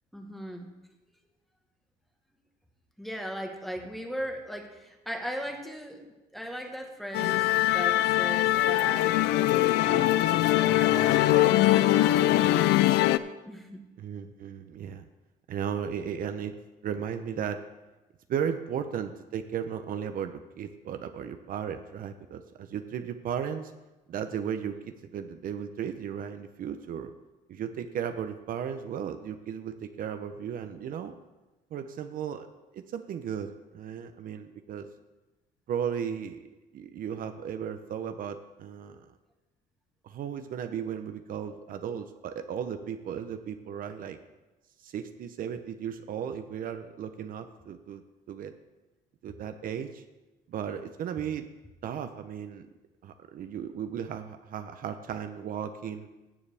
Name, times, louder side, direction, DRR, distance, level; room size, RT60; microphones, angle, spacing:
voice 1, 0.1-0.7 3.0-6.1 6.3-7.5 7.7-9.1 9.8-10.3 10.6-12.9 13.4-13.8, equal, ahead, 3 dB, 1.4 m, -37 dB
Musical instrument, 7.1-13.2, left 15 dB, 85° left, 0.4 m, -22 dB
voice 2, 14.0-15.1 15.5-16.5 16.8-17.6 18.3-23.7 24.1-27.1 27.5-31.1 31.7-32.5 32.7-34.9 35.7-36.4 36.7-39.0 40.0-44.2 44.8-48.0 48.3-48.5 49.2-50.0 50.5-51.4 51.8-52.7 53.0-56.1, right 8 dB, 55° right, 8 dB, 0.7 m, -35 dB
15.5 x 7.1 x 3.4 m, 1.1 s
cardioid pair, 110°, 17 cm